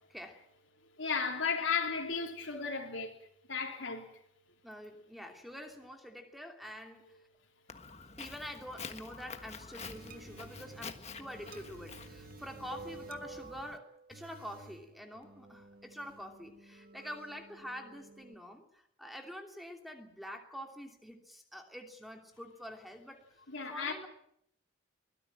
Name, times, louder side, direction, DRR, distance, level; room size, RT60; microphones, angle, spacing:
voice 1, 0.1-0.4 4.6-7.2 8.2-23.2 23.7-24.1, equal, ahead, 2.8 m, -46 dB
voice 2, 1.0-3.1 3.5-4.1 23.5-23.9, left 5 dB, 70° left, 3.6 m, -34 dB
Walk footsteps, 7.7-13.8, left 5 dB, 30° left, 1.5 m, -48 dB
sound 1, 9.7-18.3, right 3 dB, 45° right, 1.7 m, -52 dB
23.0 x 17.0 x 8.9 m
head